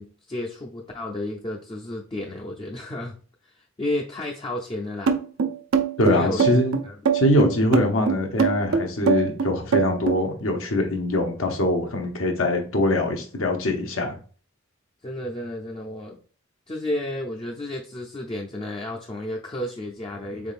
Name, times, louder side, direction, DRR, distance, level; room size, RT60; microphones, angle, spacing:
voice 1, 0.0-3.1 3.4-5.2 6.1-6.6 6.8-7.0 15.0-16.2 16.7-20.5, left 1 dB, 25° left, 0 dB, 0.4 m, -32 dB
sound 1, 5.1-10.2, right 6 dB, 90° right, 0.5 m, -22 dB
voice 2, 6.0-6.7 7.1-14.2, left 1 dB, 80° left, 3 dB, 0.9 m, -23 dB
3.9 x 3.6 x 2.4 m, 0.40 s
head